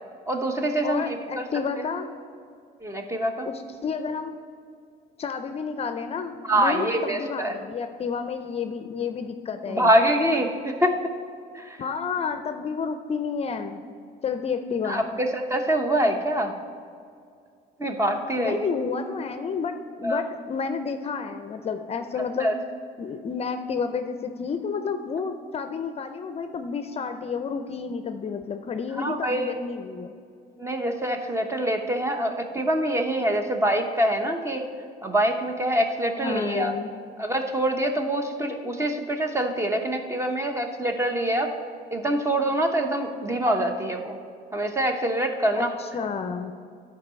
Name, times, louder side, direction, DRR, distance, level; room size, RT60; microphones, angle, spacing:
voice 1, 0.3-1.4 2.8-3.5 6.4-7.6 9.7-10.9 11.5-11.8 14.8-16.5 17.8-18.7 20.0-20.2 22.4-22.5 28.9-29.6 30.6-34.7 35.0-36.7 37.2-41.5 41.9-44.2 44.5-45.7, right 1 dB, 15° right, 5 dB, 0.9 m, -25 dB
voice 2, 0.8-2.1 3.4-4.4 5.2-9.9 11.8-13.8 14.2-15.0 18.3-22.5 23.0-30.1 36.2-36.9 45.5-46.5, left 5 dB, 35° left, 8 dB, 0.5 m, -30 dB
10.5 x 4.7 x 6.2 m, 2.3 s
cardioid pair, 110°, 17 cm